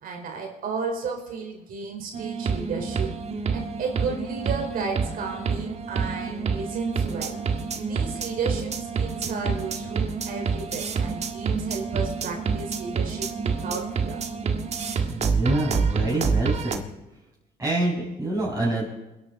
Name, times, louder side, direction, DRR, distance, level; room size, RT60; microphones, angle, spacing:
voice 1, 0.0-3.1 3.5-7.4 7.7-13.3 13.6-14.2, right 5 dB, 60° right, 1 dB, 4.5 m, -33 dB
sound 1, 2.1-16.8, right 5 dB, 40° right, 1.8 m, -28 dB
voice 2, 15.1-16.8 17.6-18.8, right 2 dB, 15° right, -7 dB, 6.5 m, -26 dB
27.5 x 11.0 x 4.2 m, 1.0 s
cardioid pair, 110°, 17 cm